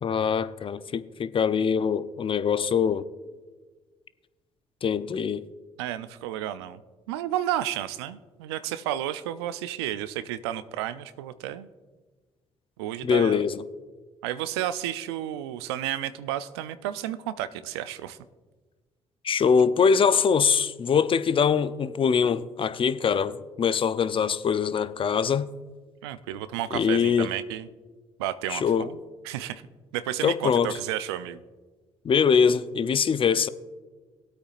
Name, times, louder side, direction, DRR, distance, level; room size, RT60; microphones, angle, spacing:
voice 1, 0.0-3.1 4.8-5.4 13.0-13.6 19.2-25.5 26.7-27.3 28.5-28.9 30.2-30.8 32.0-33.5, left 6 dB, 40° left, 0.6 m, -23 dB
voice 2, 5.8-6.8 7.1-11.7 12.8-13.4 14.2-18.2 26.0-27.7 28.2-29.0 29.2-29.6 29.9-31.4, right 12 dB, 90° right, 0.4 m, -32 dB
19.0 x 8.5 x 2.5 m
hypercardioid pair, 50°, 13 cm